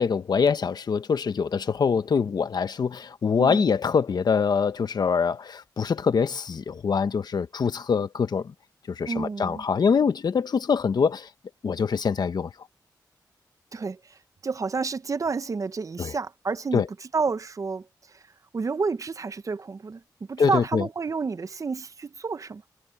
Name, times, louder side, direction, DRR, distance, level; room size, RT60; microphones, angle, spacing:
voice 1, 0.0-8.5 8.9-11.3 11.6-12.5 16.0-16.1 16.7-16.9 20.4-20.8, left 6 dB, 65° left, 1.1 m, -24 dB
voice 2, 3.4-3.7 9.1-9.6 13.7-18.2 18.5-20.0 20.3-22.6, right 4 dB, 45° right, 0.8 m, -30 dB
cardioid pair, 75°, 7 cm